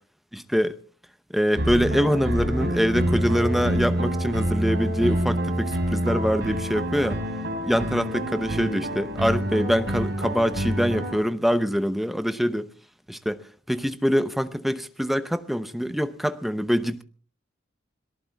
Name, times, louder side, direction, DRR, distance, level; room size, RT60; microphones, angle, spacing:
voice 1, 0.3-0.8 1.3-7.2 7.6-12.7 13.1-13.4 13.7-17.0, equal, ahead, 0.7 m, -24 dB
sound 1, 1.6-11.2, equal, 60° right, 5.1 m, -27 dB
26.5 x 18.5 x 2.3 m
head